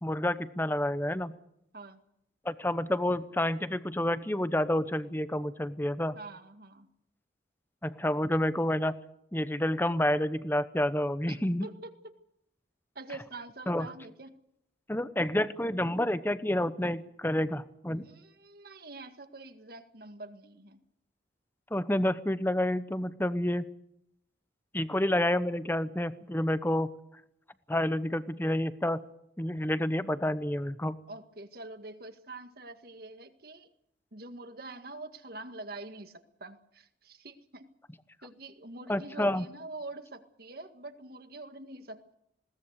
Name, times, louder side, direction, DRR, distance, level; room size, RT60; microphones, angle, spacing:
voice 1, 0.0-1.4 2.4-6.2 7.8-9.0 9.3-11.7 13.7-13.9 14.9-18.1 21.7-23.7 24.7-26.9 27.7-29.1 29.4-31.0 38.9-39.5, left 1 dB, 10° left, 13 dB, 0.9 m, -29 dB
voice 2, 6.1-6.9 11.3-12.1 12.9-14.3 18.0-20.8 31.1-33.7 34.1-37.7 38.2-42.1, right 2 dB, 55° right, 8 dB, 1.8 m, -45 dB
20.5 x 18.5 x 8.2 m, 0.77 s
head